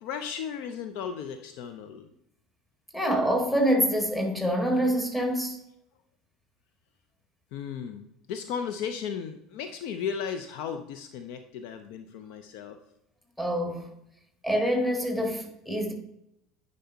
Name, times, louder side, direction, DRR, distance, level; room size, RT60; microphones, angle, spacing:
voice 1, 0.0-2.1 7.5-8.0 8.3-12.8, left 7 dB, 55° left, 0.5 m, -35 dB
voice 2, 2.9-5.6 13.4-13.9 14.4-15.9, equal, 10° left, 1.7 m, -26 dB
9.9 x 5.3 x 2.7 m
figure-of-eight pair, 65°, 0 cm